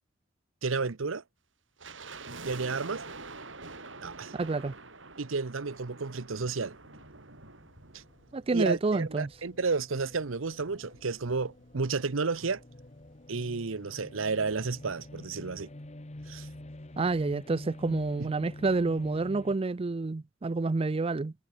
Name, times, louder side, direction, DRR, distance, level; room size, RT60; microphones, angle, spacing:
voice 1, 0.6-1.2 2.4-3.0 4.0-4.3 5.2-6.8 7.9-8.0 8.5-12.6 13.3-15.7 16.3-16.5 18.2-18.3, right 4 dB, 80° right, 0.9 m, -32 dB
sound 1, 1.8-9.1 9.3-9.4 10.1-11.9 12.2-12.3 12.5-12.8 13.2-13.3, right 3 dB, 65° right, 4.9 m, -47 dB
voice 2, 4.3-4.7 8.3-9.3 17.0-21.3, right 3 dB, 30° right, 0.4 m, -29 dB
sound 2, 6.3-13.3, left 1 dB, 85° left, 5.1 m, -65 dB
sound 3, 7.7-19.6, left 1 dB, 35° left, 1.3 m, -48 dB
head